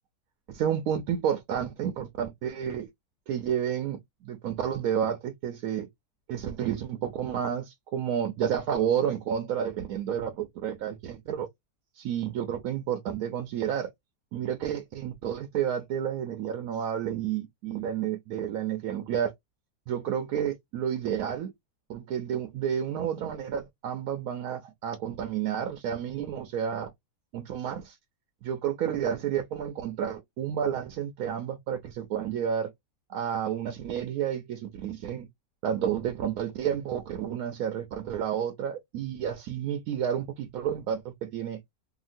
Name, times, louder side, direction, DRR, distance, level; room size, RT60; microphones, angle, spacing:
voice 1, 0.5-2.9 3.3-5.9 6.3-11.5 12.0-13.9 14.3-19.3 19.9-21.5 21.9-26.9 27.3-28.0 28.4-32.7 33.1-35.3 35.6-41.6, right 9 dB, 70° right, 0.9 m, -30 dB
2.8 x 2.8 x 2.5 m
omnidirectional pair, 1.8 m